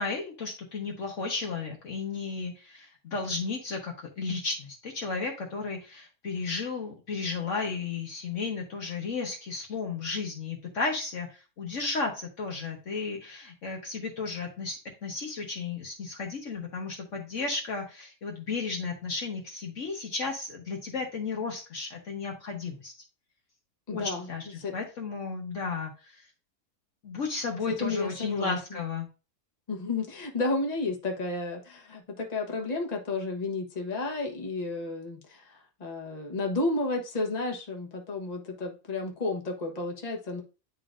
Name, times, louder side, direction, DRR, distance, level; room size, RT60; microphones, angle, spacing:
voice 1, 0.0-22.9 23.9-26.2 27.0-29.1, left 4 dB, 55° left, 1 dB, 1.3 m, -34 dB
voice 2, 23.9-24.3 24.6-24.7 27.7-28.8 29.7-40.4, left 3 dB, 30° left, 1 dB, 1.1 m, -32 dB
10.0 x 3.8 x 2.5 m, 0.33 s
omnidirectional pair, 1.6 m